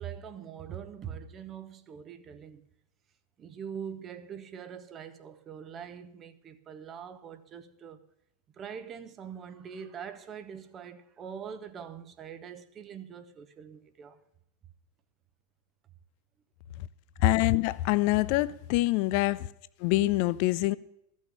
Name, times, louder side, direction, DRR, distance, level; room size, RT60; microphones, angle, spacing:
voice 1, 0.0-2.6 3.4-8.0 8.6-14.2, right 8 dB, 25° right, 0.9 m, -43 dB
voice 2, 17.2-19.4 19.8-20.8, left 17 dB, 45° left, 0.5 m, -25 dB
14.0 x 6.4 x 8.7 m
figure-of-eight pair, 90°, 0 cm